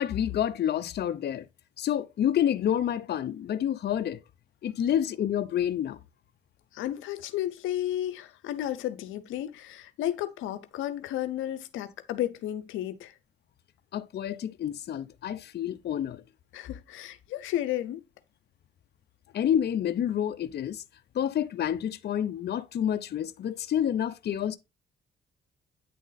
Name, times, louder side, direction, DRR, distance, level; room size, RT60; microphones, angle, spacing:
voice 1, 0.0-1.4 1.8-4.2 4.6-6.0 13.9-16.2 19.3-20.8 21.2-24.6, left 10 dB, 55° left, 0.7 m, -28 dB
voice 2, 6.7-13.1 16.5-18.0, left 12 dB, 90° left, 0.8 m, -33 dB
9.3 x 3.7 x 4.0 m
cardioid pair, 90°, 20 cm